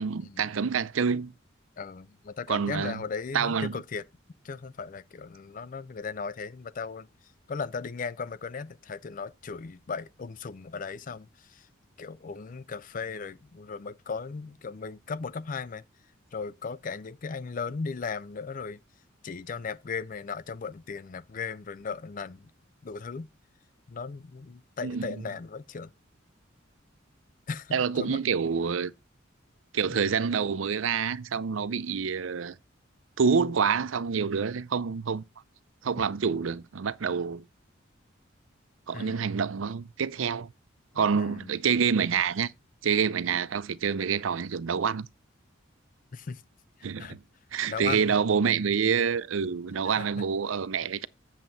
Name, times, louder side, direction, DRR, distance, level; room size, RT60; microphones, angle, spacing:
voice 1, 0.0-1.3 2.5-3.0 3.3-3.8 24.8-25.1 27.7-28.9 29.7-32.5 33.2-35.2 35.8-37.4 38.9-40.5 41.0-42.5 42.8-45.1 46.8-47.2 47.5-51.1, right 6 dB, 80° right, 0.5 m, -27 dB
voice 2, 1.8-4.0 4.4-7.1 7.5-11.7 12.0-15.8 16.3-18.8 19.2-22.5 22.8-23.3 23.9-25.9 27.5-28.2 29.9-30.1 36.0-36.1 38.9-39.3 40.9-41.5 46.1-46.4 46.8-47.2 47.6-48.2 49.9-50.2, left 5 dB, 40° left, 0.4 m, -37 dB
7.6 x 7.3 x 3.9 m
head